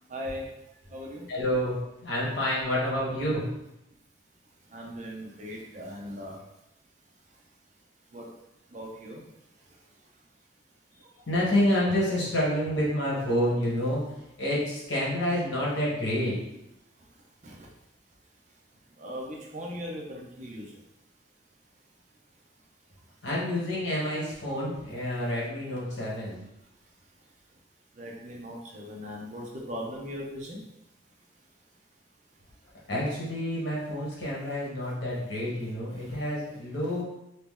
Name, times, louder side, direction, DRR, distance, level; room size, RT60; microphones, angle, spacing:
voice 1, 0.1-0.6 0.9-1.2 4.6-6.4 7.3-7.4 8.1-8.4 8.7-9.3 9.5-10.1 17.1-17.2 17.4-17.7 18.9-20.8 26.8-26.9 27.2-27.6 27.9-30.7 35.9-36.2, equal, 40° right, -2 dB, 0.6 m, -40 dB
voice 2, 1.3-3.5 11.3-14.0 14.4-16.4 23.2-26.4 32.9-37.0, left 1 dB, 70° left, -5 dB, 1.3 m, -28 dB
3.0 x 2.8 x 3.6 m, 0.86 s
head